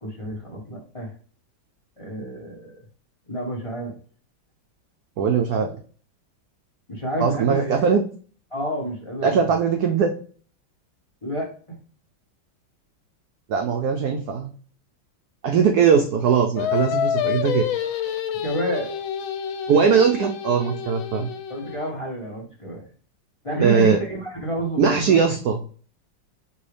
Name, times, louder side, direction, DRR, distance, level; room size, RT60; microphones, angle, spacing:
voice 1, 0.0-1.1 2.0-2.7 3.3-3.9 6.9-7.7 8.5-9.4 11.2-11.8 18.4-18.9 21.5-22.9 23.4-25.2, right 1 dB, 20° left, -3 dB, 0.9 m, -29 dB
voice 2, 5.2-5.8 7.2-8.0 9.2-10.1 13.5-14.5 15.4-17.7 19.7-21.3 23.6-24.0 24.8-25.6, right 6 dB, 80° right, 4 dB, 0.8 m, -20 dB
Singing, 16.6-21.9, left 9 dB, 85° left, 1.4 m, -28 dB
5.3 x 2.7 x 3.3 m, 0.42 s
omnidirectional pair, 2.2 m